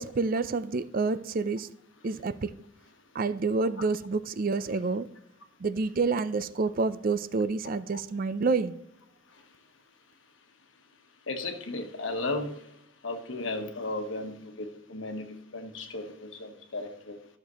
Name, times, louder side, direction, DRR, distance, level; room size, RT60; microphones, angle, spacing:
voice 1, 0.0-1.7 2.0-2.5 3.1-5.1 5.6-8.8, right 4 dB, 45° right, 0.5 m, -28 dB
voice 2, 11.3-12.6 13.0-17.2, left 2 dB, 70° left, 1.2 m, -35 dB
13.5 x 6.6 x 3.0 m
head